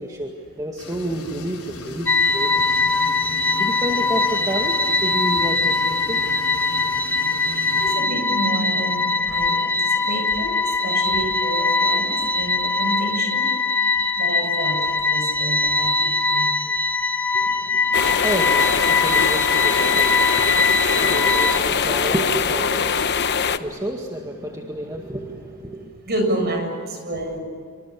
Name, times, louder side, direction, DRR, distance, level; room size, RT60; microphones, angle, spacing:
voice 1, 0.0-2.8 3.6-6.5 17.3-25.9, right 1 dB, 15° right, 1 dB, 2.1 m, -30 dB
sound 1, 0.8-7.9, left 2 dB, 70° left, 4.4 m, -37 dB
sound 2, 2.1-21.6, left 3 dB, 10° left, 0.8 m, -21 dB
voice 2, 7.6-13.4 14.2-16.4 26.1-27.4, right 1 dB, 45° right, 3 dB, 7.3 m, -29 dB
sound 3, 17.9-23.6, left 6 dB, 50° left, 1.0 m, -22 dB
26.5 x 25.5 x 8.6 m, 2.1 s
head